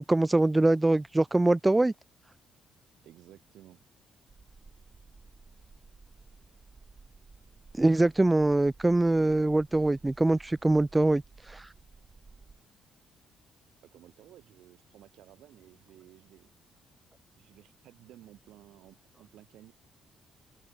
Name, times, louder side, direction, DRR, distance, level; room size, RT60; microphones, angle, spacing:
voice 1, 0.0-1.9 7.8-11.2 11.5-11.7, right 2 dB, 15° right, 0.4 m, -23 dB
voice 2, 3.0-3.8 13.8-16.5 17.4-19.7, right 13 dB, 80° right, 4.5 m, -55 dB
sound 1, 4.3-12.6, right 4 dB, 30° right, 6.2 m, -55 dB
open air
cardioid pair, 90°, 0 cm